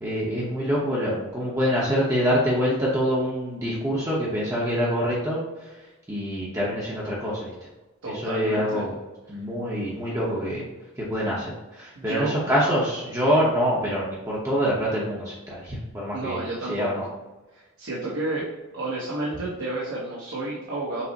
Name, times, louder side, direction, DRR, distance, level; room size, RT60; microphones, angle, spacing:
voice 1, 0.0-5.4 6.1-7.5 8.1-8.9 9.3-10.6 11.0-11.5 11.8-16.4 16.7-17.0, equal, 15° right, -6 dB, 0.7 m, -25 dB
voice 2, 8.0-8.9 12.0-12.3 16.1-17.0 17.5-18.5 18.7-21.0, right 2 dB, 65° right, -5 dB, 0.9 m, -31 dB
5.8 x 2.0 x 4.0 m, 1.1 s
head